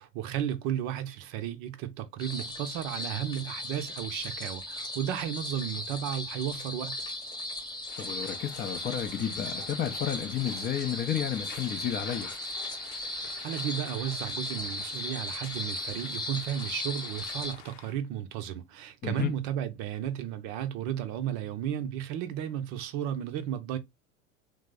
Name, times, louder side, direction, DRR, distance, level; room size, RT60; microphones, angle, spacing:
voice 1, 0.0-7.0 13.4-23.8, right 10 dB, 45° right, 0.6 m, -34 dB
sound 1, 2.2-17.5, left 1 dB, 10° left, 1.0 m, -37 dB
sound 2, 7.9-18.0, left 8 dB, 60° left, 0.7 m, -49 dB
voice 2, 8.0-12.3 19.0-19.3, left 9 dB, 25° left, 0.4 m, -32 dB
3.1 x 2.0 x 3.5 m
hypercardioid pair, 95°, 39 cm